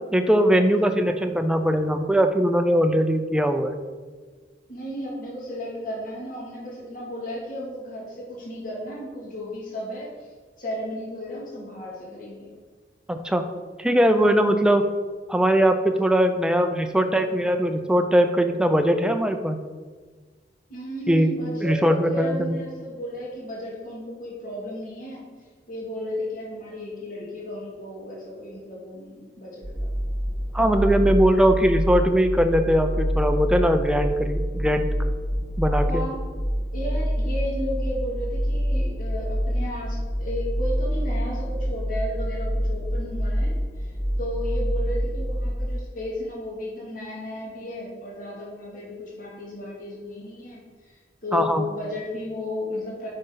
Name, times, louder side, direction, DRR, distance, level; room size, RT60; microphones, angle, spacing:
voice 1, 0.1-3.8 13.1-13.5 13.8-14.9 15.3-19.6 21.1-21.3 21.6-22.6 30.5-34.9 35.6-36.0 51.3-51.7, equal, 5° right, 6 dB, 0.5 m, -20 dB
voice 2, 4.7-10.3 10.6-12.5 20.7-25.3 25.7-29.9 35.9-36.3 36.7-53.1, left 1 dB, 50° left, -5 dB, 2.2 m, -34 dB
sound 1, 29.6-45.5, equal, 75° left, 1.8 m, -26 dB
9.1 x 5.3 x 3.9 m, 1.4 s
head